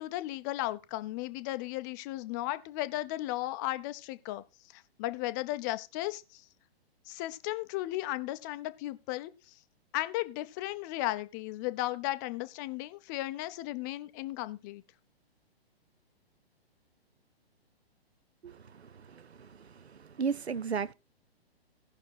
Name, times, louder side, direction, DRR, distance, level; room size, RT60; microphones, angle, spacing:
voice 1, 0.0-4.4 4.7-6.4 7.1-9.3 9.9-14.8, left 17 dB, 20° left, 0.5 m, -35 dB
voice 2, 19.1-19.5 20.2-20.9, right 6 dB, 80° right, 0.6 m, -33 dB
17.0 x 6.0 x 4.1 m
figure-of-eight pair, 120°, 32 cm